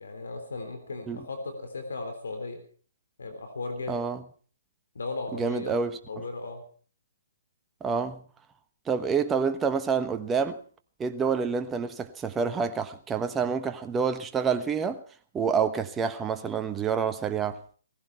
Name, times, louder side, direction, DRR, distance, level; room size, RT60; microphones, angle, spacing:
voice 1, 0.0-2.6 3.2-4.0 5.0-5.8 6.1-6.6, left 3 dB, 75° left, 3.5 m, -36 dB
voice 2, 3.9-4.2 5.3-6.0 7.8-8.2 8.9-10.6 11.0-15.0 15.3-17.6, right 6 dB, 15° right, 1.2 m, -28 dB
17.5 x 15.5 x 4.6 m
hypercardioid pair, 135°, 0 cm